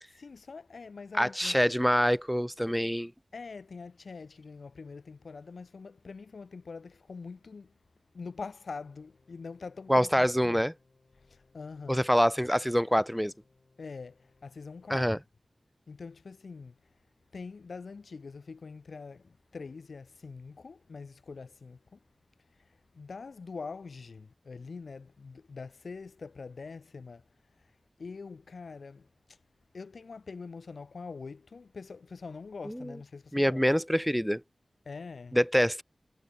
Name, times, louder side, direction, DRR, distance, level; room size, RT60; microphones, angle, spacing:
voice 1, 0.1-1.6 3.3-7.7 8.1-10.6 11.3-12.0 13.8-15.1 15.9-16.8 17.3-22.0 22.9-27.2 28.0-29.4 29.7-33.6 34.9-35.4, left 4 dB, 90° left, 2.1 m, -44 dB
voice 2, 1.1-3.1 9.9-10.7 11.9-13.3 14.9-15.2 32.6-32.9 33.3-34.4 35.3-35.8, equal, ahead, 0.5 m, -25 dB
sound 1, 8.7-15.0, left 3 dB, 60° left, 7.8 m, -68 dB
wide cardioid pair, 90°, 0 cm